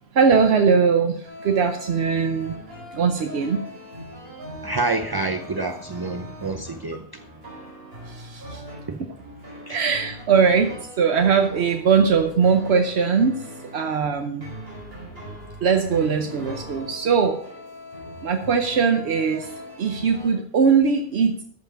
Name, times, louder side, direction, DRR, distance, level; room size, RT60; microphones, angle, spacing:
voice 1, 0.1-2.6 2.9-3.6 8.1-8.6 9.0-9.1 9.7-13.4 13.7-14.4 15.6-17.4 18.2-19.5 19.8-21.4, right 6 dB, 85° right, 6 dB, 1.1 m, -20 dB
sound 1, 1.2-20.3, equal, 70° right, 5.1 m, -40 dB
voice 2, 4.6-7.1 8.9-9.0 9.7-9.8, right 3 dB, 25° right, 7 dB, 0.6 m, -27 dB
14.0 x 5.8 x 6.2 m, 0.66 s
omnidirectional pair, 1.1 m